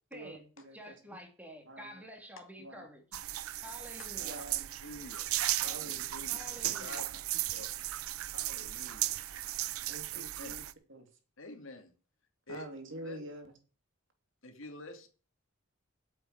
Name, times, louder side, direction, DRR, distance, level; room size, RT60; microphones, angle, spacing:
voice 1, 0.1-3.0 3.6-4.4 6.3-7.1, equal, 5° right, 2.8 m, -49 dB
voice 2, 0.6-0.9 1.7-2.0 2.6-2.9 4.2-4.7 5.6-6.5 7.1-7.2 8.5-8.7 9.0-9.1 9.9-11.1 12.5-13.5, right 1 dB, 60° right, 3.1 m, -47 dB
sound 1, 3.1-10.7, right 15 dB, 75° right, 0.6 m, -36 dB
voice 3, 4.8-5.2 5.5-6.4 6.8-7.0 7.5-7.8 8.3-9.1 10.1-10.6 11.4-11.9 12.5-12.6 13.0-13.2 14.4-15.1, left 2 dB, 60° left, 2.7 m, -48 dB
8.6 x 8.5 x 8.9 m
head